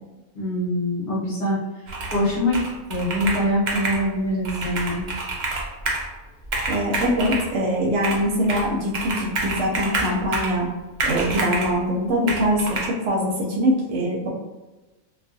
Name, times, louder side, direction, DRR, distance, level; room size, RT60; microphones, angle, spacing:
voice 1, 0.3-1.6 2.1-2.6 2.9-5.1, equal, 50° left, -7 dB, 0.9 m, -23 dB
Computer keyboard, 1.9-2.3 2.5-4.0 4.4-6.1 6.4-7.5 8.0-8.7 8.9-10.6 11.0-11.7 12.3-12.9, right 2 dB, 90° right, 0.4 m, -27 dB
voice 2, 6.7-10.7 11.0-14.3, equal, 70° right, -2 dB, 0.8 m, -23 dB
2.3 x 2.2 x 2.6 m, 1.1 s
omnidirectional pair, 1.4 m